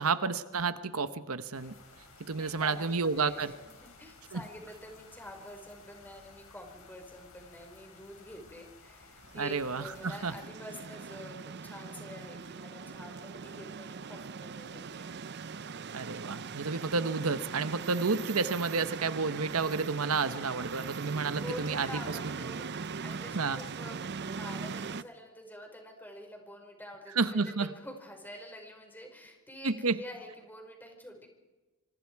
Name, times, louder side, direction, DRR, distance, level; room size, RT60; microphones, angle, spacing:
voice 1, 0.0-1.7 2.3-3.5 4.3-4.4 9.3-10.3 15.9-22.3 23.3-23.6 27.2-27.7 29.6-30.0, right 4 dB, 85° right, 12 dB, 1.1 m, -31 dB
sound 1, 1.5-10.4, left 3 dB, 85° left, 6.1 m, -56 dB
voice 2, 2.4-15.2 21.4-31.3, left 1 dB, 10° left, 2 dB, 5.0 m, -47 dB
sound 2, 9.2-25.0, right 5 dB, 50° right, 0.6 m, -41 dB
26.0 x 26.0 x 4.8 m, 1.2 s
head